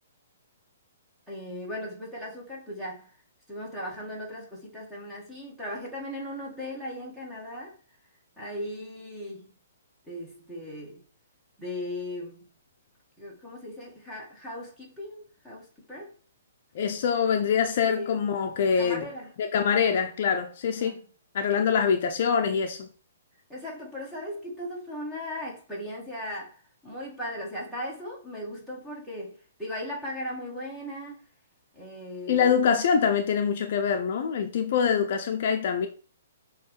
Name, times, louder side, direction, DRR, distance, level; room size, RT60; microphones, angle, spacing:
voice 1, 1.3-3.1 3.5-7.8 8.4-9.5 10.1-11.0 11.6-12.4 13.2-16.1 17.8-18.3 18.8-19.3 20.8-21.1 23.5-31.2 31.7-32.7, left 1 dB, 5° right, 2.1 m, -38 dB
voice 2, 16.7-19.0 19.4-21.0 21.3-22.9 32.3-35.9, left 7 dB, 45° left, 0.8 m, -24 dB
6.3 x 3.2 x 5.6 m
hypercardioid pair, 165°, 0 cm